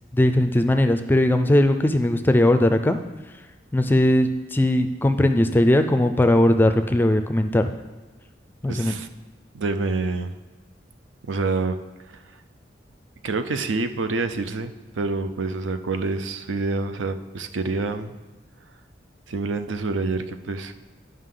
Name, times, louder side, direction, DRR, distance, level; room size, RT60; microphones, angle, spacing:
voice 1, 0.1-3.0 3.7-7.7 8.6-8.9, left 1 dB, 10° left, 8 dB, 0.3 m, -19 dB
voice 2, 8.7-9.1 9.5-10.3 11.2-11.8 12.1-12.2 13.2-18.2 19.3-20.8, right 3 dB, 90° right, 10 dB, 0.6 m, -27 dB
11.5 x 5.4 x 3.8 m, 1.2 s
head